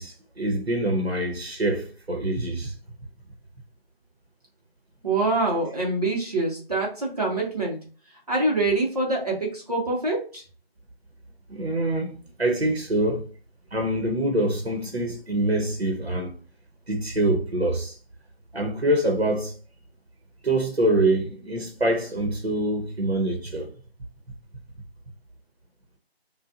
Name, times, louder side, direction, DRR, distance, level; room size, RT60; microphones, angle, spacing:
voice 1, 0.0-2.7 11.5-13.3 13.7-16.3 16.9-18.0 18.5-19.6 20.4-23.7, right 1 dB, 85° right, 1.2 m, -25 dB
voice 2, 5.0-7.8 8.3-10.4, right 2 dB, 40° right, 1.0 m, -25 dB
5.6 x 2.5 x 2.6 m
figure-of-eight pair, 160°, 31 cm